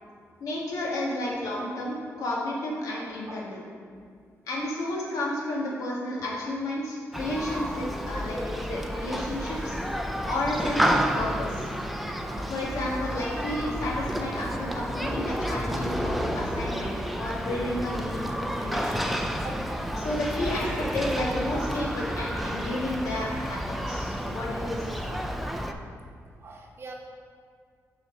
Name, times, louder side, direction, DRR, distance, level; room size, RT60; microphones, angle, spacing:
voice 1, 0.4-3.6 4.5-9.8 10.2-11.7 12.5-19.2 20.0-24.9, left 1 dB, 90° left, -3 dB, 1.5 m, -32 dB
voice 2, 2.9-3.4 8.9-9.3 12.2-12.5 14.0-14.1 18.2-18.8 19.3-19.6 20.0-20.1 21.6-21.7 25.1-25.7 26.4-26.9, right 3 dB, 45° right, 1 dB, 0.9 m, -45 dB
Human group actions, 7.1-25.7, equal, ahead, 0.4 m, -30 dB
6.8 x 4.1 x 5.3 m, 2.2 s
cardioid pair, 125°, 6 cm